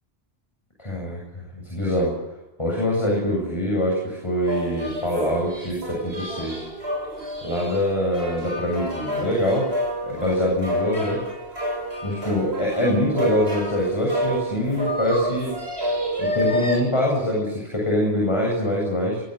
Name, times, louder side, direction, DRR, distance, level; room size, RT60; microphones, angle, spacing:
voice 1, 0.8-2.1 2.6-6.6 7.4-9.7 10.0-11.2 12.0-15.5 16.2-19.2, left 1 dB, 25° left, -2 dB, 7.9 m, -24 dB
sound 1, 4.4-16.8, equal, 70° right, 6.9 m, -29 dB
23.5 x 18.5 x 8.1 m, 0.95 s
omnidirectional pair, 1.1 m